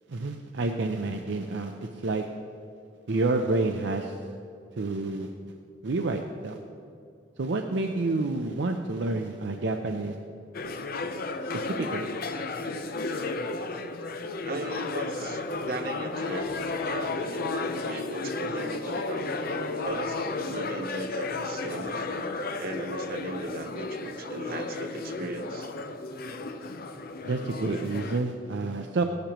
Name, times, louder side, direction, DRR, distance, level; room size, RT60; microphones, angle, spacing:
voice 1, 0.1-2.3 3.1-4.2 4.8-5.3 5.8-6.6 7.4-10.2 11.5-12.1 27.2-29.0, right 3 dB, 70° right, 4 dB, 0.6 m, -29 dB
sound 1, 10.5-28.2, left 3 dB, 55° left, 0.7 m, -33 dB
voice 2, 14.4-19.3 19.8-22.0 22.6-25.7, right 2 dB, 55° right, 5 dB, 0.9 m, -37 dB
17.0 x 11.5 x 3.0 m, 2.6 s
head